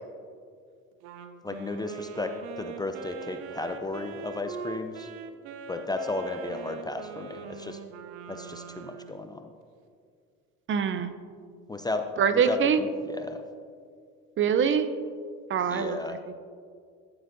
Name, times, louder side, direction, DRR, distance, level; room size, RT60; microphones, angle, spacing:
Wind instrument woodwind instrument, 1.0-9.3, right 6 dB, 80° right, 0.7 m, -42 dB
voice 1, 1.4-2.3 2.6-5.1 5.7-7.8 8.3-9.5 11.7-12.1 12.3-13.4 15.7-16.2, left 2 dB, 15° left, 6 dB, 0.4 m, -34 dB
voice 2, 10.7-11.1 12.2-12.8 14.4-14.9 15.5-16.3, right 7 dB, 40° right, 11 dB, 0.6 m, -24 dB
14.5 x 7.7 x 2.6 m, 2.2 s
supercardioid pair, 90°, 32 cm